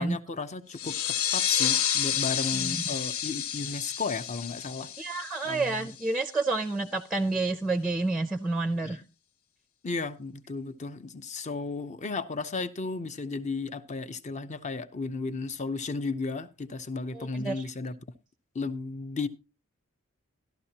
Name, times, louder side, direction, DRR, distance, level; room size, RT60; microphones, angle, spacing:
voice 1, 0.0-4.9 5.4-5.9 8.8-8.9 9.8-17.9 18.5-19.3, left 4 dB, 35° left, 0.7 m, -34 dB
sound 1, 0.7-6.1, left 9 dB, 80° left, 0.6 m, -30 dB
voice 2, 2.5-2.8 5.0-9.0 17.1-17.6, right 3 dB, ahead, 0.5 m, -29 dB
14.0 x 12.0 x 2.9 m
head